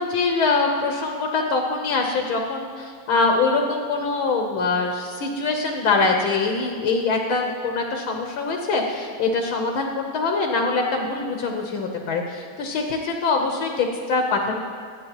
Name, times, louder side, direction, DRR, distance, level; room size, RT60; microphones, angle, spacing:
voice 1, 0.0-14.6, left 3 dB, 75° left, 2 dB, 1.9 m, -23 dB
27.0 x 9.5 x 3.0 m, 2.1 s
omnidirectional pair, 2.3 m